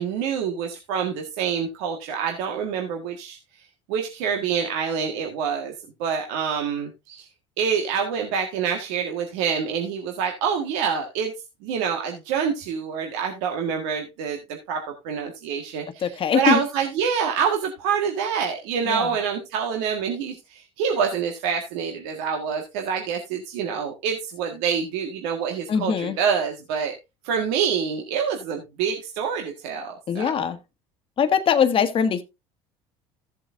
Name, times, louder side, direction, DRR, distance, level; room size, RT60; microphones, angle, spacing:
voice 1, 0.0-3.4 3.9-5.7 6.0-7.3 7.6-11.3 11.6-26.9 27.2-30.3, right 7 dB, 80° right, 1.6 m, -26 dB
voice 2, 16.0-16.6 18.8-19.1 25.7-26.2 30.1-30.6 31.2-32.2, left 7 dB, 40° left, 1.3 m, -22 dB
14.5 x 7.6 x 2.6 m
supercardioid pair, 95°, 14 cm